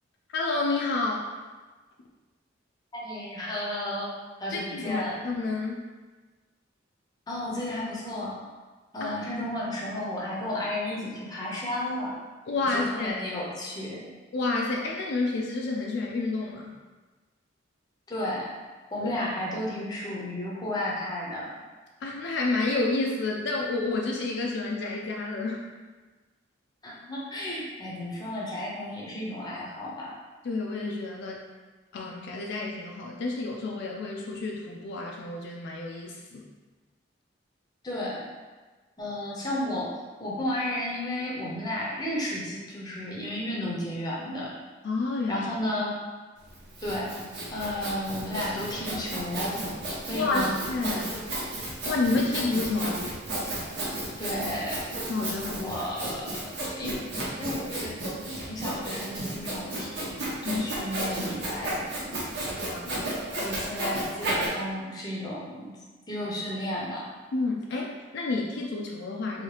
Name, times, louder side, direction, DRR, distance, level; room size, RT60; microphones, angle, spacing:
voice 1, 0.3-1.2 4.5-5.8 9.0-9.1 12.5-13.2 14.3-16.7 19.0-19.1 22.0-25.6 30.4-31.4 31.9-36.4 44.8-45.5 50.1-51.1 51.9-53.1 55.1-55.8 60.4-60.7 62.7-63.1 67.3-69.4, left 3 dB, 65° left, -1 dB, 0.4 m, -29 dB
voice 2, 2.9-4.1 4.4-5.2 7.3-8.4 8.9-12.1 12.7-14.0 18.1-18.5 18.9-21.5 26.8-30.1 37.8-38.3 39.0-39.9 40.2-44.5 45.3-45.9 46.8-47.2 47.5-49.6 50.1-50.6 54.2-54.9 55.6-56.2 56.4-56.9 57.4-58.0 58.4-60.2 60.4-62.5 63.4-65.7 66.1-67.1, left 1 dB, 20° left, -4 dB, 0.7 m, -33 dB
Sawing, 46.4-64.5, right 1 dB, 60° right, 0.9 m, -33 dB
2.8 x 2.7 x 3.2 m, 1.3 s
head